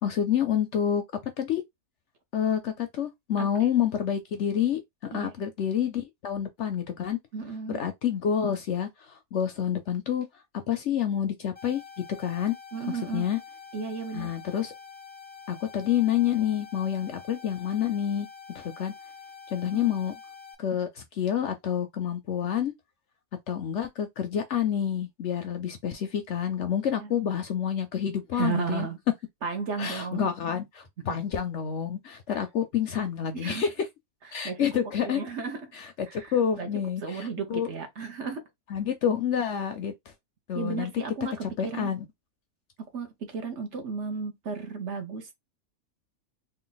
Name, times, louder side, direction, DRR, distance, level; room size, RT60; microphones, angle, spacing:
voice 1, 0.0-1.0 1.4-1.6 2.3-7.2 7.7-10.3 10.7-11.8 12.2-12.5 13.1-13.4 14.1-14.7 15.5-18.9 19.5-20.1 20.6-22.7 23.5-28.9 29.8-33.9 34.3-35.2 35.7-37.7 38.7-39.9 40.5-40.9 41.6-42.0, left 9 dB, 65° left, 0.8 m, -28 dB
voice 2, 3.4-3.7 5.1-5.3 7.3-7.8 12.7-13.3 13.7-14.3 19.7-19.9 27.0-27.1 28.3-29.0 29.4-30.3 31.1-31.2 32.3-32.4 33.3-33.6 34.4-35.7 36.1-36.7 37.0-38.4 40.5-41.9 42.9-45.3, right 5 dB, 55° right, 1.1 m, -34 dB
sound 1, 11.5-20.5, left 6 dB, 10° left, 0.7 m, -47 dB
3.2 x 2.5 x 3.9 m
omnidirectional pair, 1.6 m